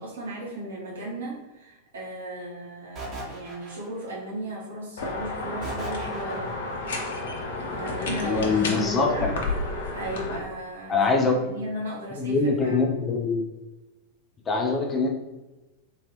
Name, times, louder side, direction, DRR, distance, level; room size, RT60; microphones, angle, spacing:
voice 1, 0.0-6.6 7.7-9.3 9.9-11.0 11.2-12.8, right 1 dB, 65° right, -6 dB, 1.4 m, -36 dB
sound 1, 3.0-4.2 5.6-6.7, right 2 dB, 30° right, 1.2 m, -37 dB
sound 2, 5.0-10.4, left 3 dB, 60° left, 0.7 m, -31 dB
voice 2, 8.2-9.2 10.9-11.6 12.1-13.4 14.5-15.1, left 4 dB, 20° left, 1 dB, 0.6 m, -23 dB
3.8 x 2.9 x 3.0 m, 1.1 s
figure-of-eight pair, 90°, 0 cm